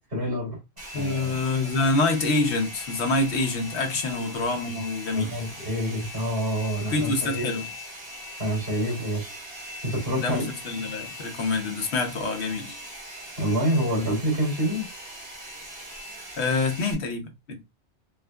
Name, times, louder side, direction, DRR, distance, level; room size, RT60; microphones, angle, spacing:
voice 1, 0.1-0.6 0.9-1.4 4.1-4.2 5.1-7.5 8.4-9.3 9.8-10.5 13.4-14.9, equal, 60° right, 2.6 m, -27 dB
Domestic sounds home sounds, 0.8-16.9, left 1 dB, 40° right, 1.6 m, -40 dB
voice 2, 0.9-5.4 6.9-7.7 10.2-12.8 16.4-17.6, left 3 dB, 75° left, 1.1 m, -26 dB
4.2 x 2.4 x 2.2 m
omnidirectional pair, 1.1 m